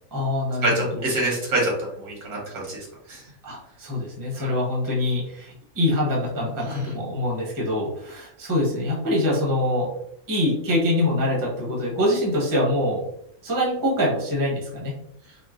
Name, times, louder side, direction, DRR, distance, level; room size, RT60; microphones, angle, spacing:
voice 1, 0.1-1.0 3.4-9.9 10.3-13.0 13.4-14.9, left 1 dB, 20° right, -3 dB, 0.6 m, -24 dB
voice 2, 0.6-2.8 3.1-3.2 4.4-4.5 6.6-6.9, right 1 dB, 85° right, -3 dB, 1.7 m, -26 dB
3.7 x 2.1 x 2.4 m, 0.75 s
omnidirectional pair, 1.5 m